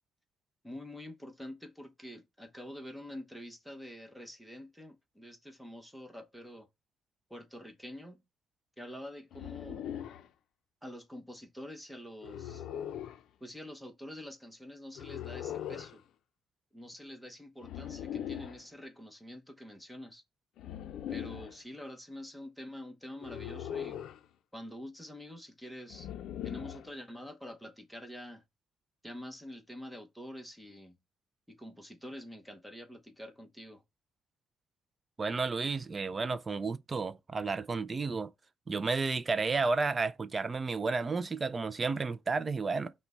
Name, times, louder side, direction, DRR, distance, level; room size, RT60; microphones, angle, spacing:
voice 1, 0.6-6.7 7.3-8.2 8.8-9.8 10.8-12.6 13.4-16.0 16.7-20.2 21.1-24.0 24.5-26.1 26.4-28.4 29.0-31.0 31.5-33.8, left 1 dB, ahead, 0.8 m, -46 dB
sound 1, 9.3-10.3 12.2-13.2 15.0-16.0 17.6-18.6 20.6-21.6 23.2-24.2 25.9-26.9, left 10 dB, 65° left, 0.5 m, -40 dB
voice 2, 35.2-38.3 38.7-42.9, right 4 dB, 25° right, 0.3 m, -32 dB
5.7 x 2.2 x 4.1 m
cardioid pair, 150°, 0 cm